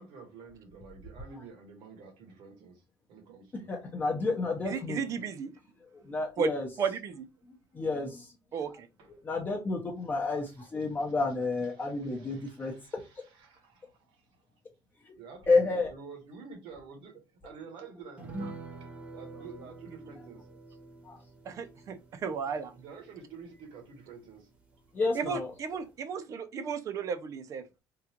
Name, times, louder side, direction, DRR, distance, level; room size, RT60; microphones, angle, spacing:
voice 1, 0.0-2.8 3.1-3.7 4.4-4.5 5.1-5.3 9.0-9.1 10.9-11.0 11.7-14.4 15.2-20.5 22.7-24.5, right 5 dB, 80° right, 1.1 m, -49 dB
voice 2, 3.7-5.0 5.9-6.7 7.5-8.6 9.2-13.0 15.0-15.1 15.5-15.9 21.0-21.2 24.9-25.5, left 3 dB, 25° left, 0.6 m, -30 dB
voice 3, 4.6-5.5 6.4-6.5 6.8-7.3 8.5-8.9 21.4-22.7 25.1-27.6, right 6 dB, 40° right, 0.5 m, -34 dB
sound 1, 18.2-25.0 25.3-25.4 25.7-25.9, right 2 dB, 15° right, 0.9 m, -47 dB
3.7 x 2.3 x 2.8 m
cardioid pair, 155°, 8 cm